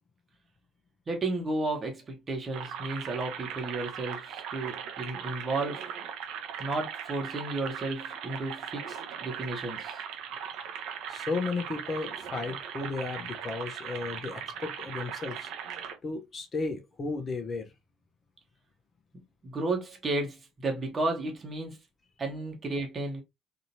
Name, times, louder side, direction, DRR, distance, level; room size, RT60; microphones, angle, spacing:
voice 1, 1.1-5.8 6.6-10.0 19.4-21.8 22.2-23.2, right 2 dB, 30° right, 1.2 m, -33 dB
sound 1, 2.5-15.9, right 8 dB, 60° right, 0.8 m, -39 dB
voice 2, 11.1-15.5 16.0-17.7, left 3 dB, 30° left, 0.8 m, -34 dB
3.9 x 2.8 x 2.7 m
figure-of-eight pair, 55°, 0 cm